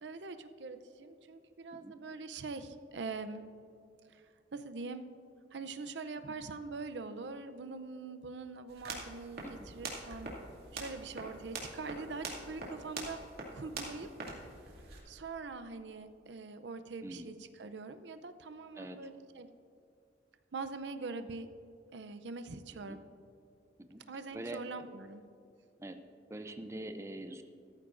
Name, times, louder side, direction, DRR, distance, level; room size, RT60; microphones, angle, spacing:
voice 1, 0.0-3.4 4.1-4.2 4.5-5.1 5.5-10.3 10.7-14.2 15.1-19.5 20.5-21.5 21.9-23.0 24.1-25.2, right 4 dB, 80° right, 10 dB, 0.6 m, -43 dB
sound 1, 8.7-15.0, right 3 dB, 60° right, 2.4 m, -44 dB
voice 2, 18.8-19.1 22.9-23.0 23.9-24.0 24.3-24.6 25.8-26.0 26.3-27.4, right 1 dB, 15° right, 7 dB, 0.5 m, -43 dB
16.0 x 13.5 x 2.6 m, 2.5 s
head